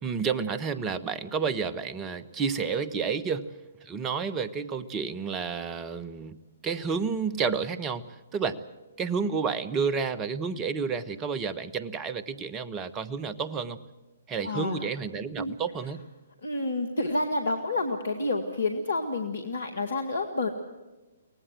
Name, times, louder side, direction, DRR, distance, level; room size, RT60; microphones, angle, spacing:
voice 1, 0.0-3.5 3.8-8.0 8.3-8.6 9.0-13.8 14.3-16.0, right 5 dB, 20° right, 15 dB, 1.2 m, -30 dB
voice 2, 14.4-14.9 15.4-15.6 16.4-20.5, left 2 dB, 70° left, 6 dB, 1.9 m, -29 dB
24.5 x 18.5 x 7.5 m, 1.1 s
figure-of-eight pair, 125°, 0 cm